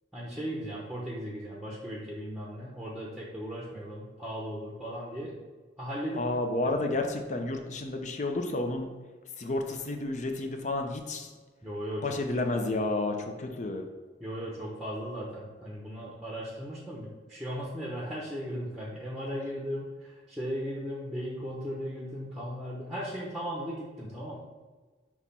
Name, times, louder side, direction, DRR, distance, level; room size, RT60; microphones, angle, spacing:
voice 1, 0.1-5.4 5.8-6.3 6.7-6.9 11.6-12.2 14.2-24.4, equal, ahead, -4 dB, 0.9 m, -37 dB
voice 2, 6.2-8.9 9.4-11.3 12.0-13.8, left 2 dB, 40° left, 4 dB, 0.7 m, -31 dB
6.5 x 3.0 x 5.5 m, 1.4 s
head